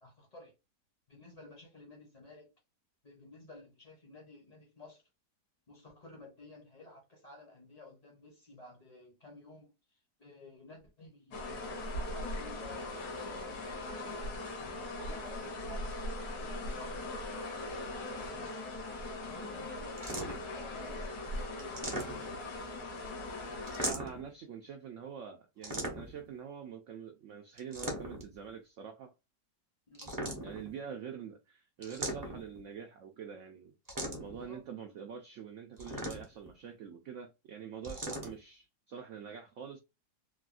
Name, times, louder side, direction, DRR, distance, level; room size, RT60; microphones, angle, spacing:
voice 1, 0.0-0.5 1.1-2.5 3.0-5.0 5.7-14.2 14.6-16.0 16.4-18.6 19.2-22.0 29.9-30.1 34.2-34.6, left 2 dB, 35° left, 0.7 m, -53 dB
sound 1, 11.3-23.9, left 2 dB, 70° left, 1.5 m, -40 dB
sound 2, 20.0-20.6 21.6-22.5 23.7-24.3 25.6-26.3 27.6-28.3 29.9-30.7 31.8-32.6 33.9-34.4 35.8-36.5 37.8-38.3, right 1 dB, 25° right, 0.5 m, -38 dB
voice 2, 23.8-29.1 30.4-39.8, right 7 dB, 70° right, 0.7 m, -45 dB
3.4 x 2.3 x 2.4 m
omnidirectional pair, 1.7 m